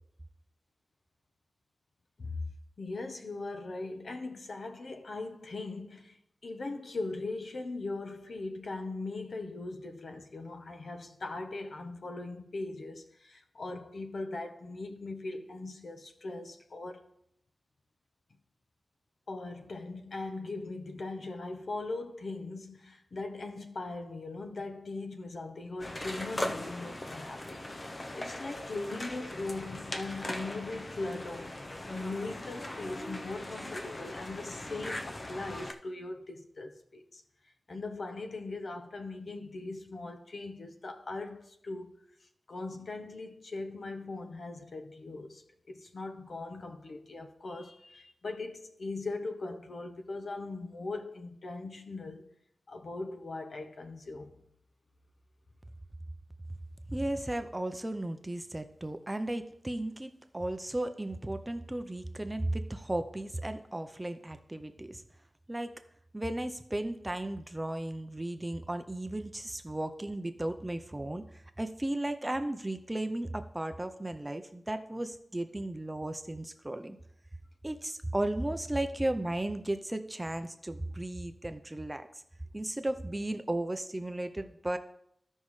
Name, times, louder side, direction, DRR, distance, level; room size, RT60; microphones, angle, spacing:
voice 1, 2.8-17.1 19.3-37.2 37.7-41.9 42.5-52.2 52.7-54.4, left 2 dB, 60° left, 0.9 m, -40 dB
sound 1, 25.8-35.7, left 1 dB, 30° left, 0.7 m, -40 dB
voice 2, 56.9-65.0 65.5-65.7 66.1-71.2 71.6-77.0 77.6-82.1 82.5-84.8, right 1 dB, 15° right, 0.6 m, -35 dB
15.0 x 5.4 x 3.2 m
wide cardioid pair, 105°, 0 cm